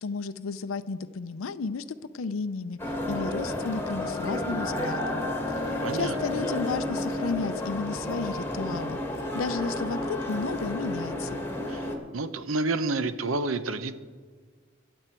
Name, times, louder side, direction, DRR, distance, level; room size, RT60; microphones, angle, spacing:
voice 1, 0.0-1.8 2.1-2.8 3.1-9.0 9.3-11.4, left 4 dB, 85° left, 12 dB, 0.5 m, -33 dB
sound 1, 2.8-12.0, left 1 dB, 10° left, 1.7 m, -31 dB
voice 2, 5.8-6.2 11.7-11.9 12.1-13.9, right 3 dB, 85° right, 11 dB, 0.8 m, -29 dB
23.5 x 7.9 x 4.5 m, 1.5 s
head